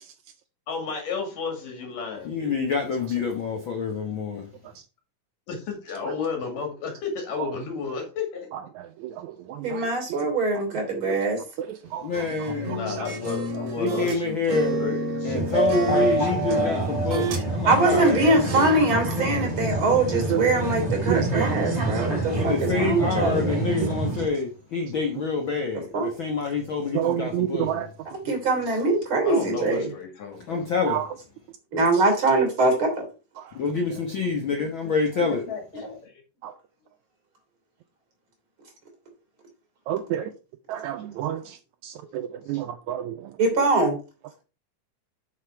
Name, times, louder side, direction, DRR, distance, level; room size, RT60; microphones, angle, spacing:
voice 1, 0.7-2.5 5.5-8.5 12.7-15.4 16.0-16.8 28.7-28.8 29.2-30.7 34.8-36.2 42.5-42.6, left 5 dB, 85° left, 4.0 m, -33 dB
voice 2, 2.2-4.5 12.0-12.8 13.8-14.7 15.2-18.2 22.3-27.7 30.5-31.0 33.5-35.4, left 4 dB, 60° left, 1.4 m, -27 dB
voice 3, 8.5-10.3 10.9-11.2 11.6-13.1 15.3-15.5 15.9-16.2 20.3-20.4 21.1-21.6 22.0-22.3 23.8-24.2 26.9-27.9 30.9-31.1 31.9-32.0 33.4-33.6 33.9-34.0 36.4-36.5 39.9-40.3 40.7-43.4, right 11 dB, 80° right, 1.7 m, -31 dB
voice 4, 9.6-11.4 17.7-23.7 25.9-26.1 28.3-29.9 31.7-33.0 43.4-44.0, right 2 dB, 40° right, 3.7 m, -23 dB
sound 1, 12.1-14.2 14.5-17.4 17.7-19.5, right 2 dB, 60° right, 3.0 m, -31 dB
sound 2, 15.3-24.3, right 2 dB, 15° right, 2.2 m, -27 dB
7.5 x 6.8 x 4.6 m
omnidirectional pair, 3.7 m